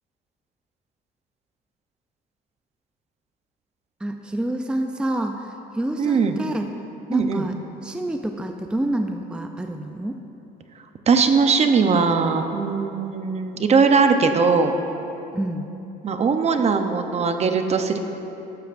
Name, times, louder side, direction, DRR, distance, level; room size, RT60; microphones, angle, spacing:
voice 1, 4.0-6.7 7.1-7.6 7.8-10.2 15.3-15.7, right 1 dB, 5° right, 4 dB, 0.5 m, -28 dB
voice 2, 6.0-6.3 7.1-7.4 11.1-14.7 16.0-18.0, right 5 dB, 40° right, 6 dB, 0.8 m, -20 dB
14.0 x 12.5 x 2.6 m, 2.9 s
cardioid pair, 110°, 17 cm